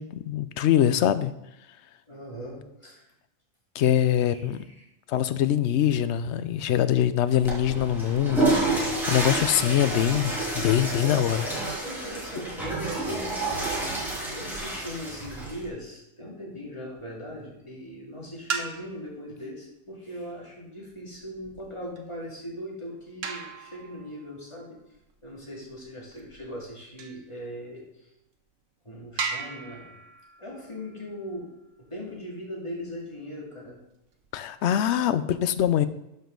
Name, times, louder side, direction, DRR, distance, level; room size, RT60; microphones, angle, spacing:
voice 1, 0.0-1.3 3.7-4.6 5.1-11.5 34.3-35.9, left 10 dB, 70° left, 13 dB, 0.8 m, -24 dB
voice 2, 2.1-3.1 4.3-4.8 11.8-13.7 14.3-24.8 25.2-28.1 28.8-29.9 30.4-31.5 31.8-33.8, equal, 25° left, -4 dB, 2.5 m, -39 dB
Water / Toilet flush, 7.3-15.7, right 2 dB, ahead, 2.6 m, -29 dB
sound 1, 17.0-17.4 18.3-19.2 20.8-27.3 28.0-28.1 28.5-28.6 29.2-31.8 33.9-34.9, right 5 dB, 80° right, 1.3 m, -38 dB
12.5 x 5.3 x 3.9 m, 0.86 s
omnidirectional pair, 1.3 m